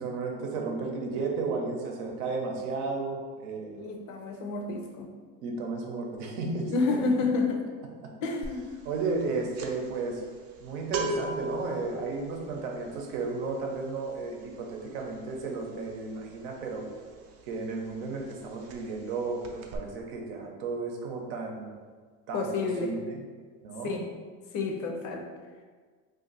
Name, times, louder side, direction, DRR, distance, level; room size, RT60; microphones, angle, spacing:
voice 1, 0.0-3.8 5.4-7.0 8.0-8.1 8.8-10.2 10.6-16.9 17.5-21.7 22.3-23.2 23.6-24.0, right 3 dB, 85° right, 1 dB, 0.8 m, -33 dB
voice 2, 3.8-5.1 6.7-7.6 8.2-8.7 22.3-22.9 23.8-24.1 24.5-25.2, left 3 dB, 50° left, 3 dB, 0.5 m, -29 dB
sound 1, 8.4-8.7 9.0-17.5 17.8-18.0 18.3-19.1 19.4-19.8, right 2 dB, 40° right, 0.4 m, -38 dB
2.5 x 2.5 x 3.9 m, 1.5 s
supercardioid pair, 130°, 39 cm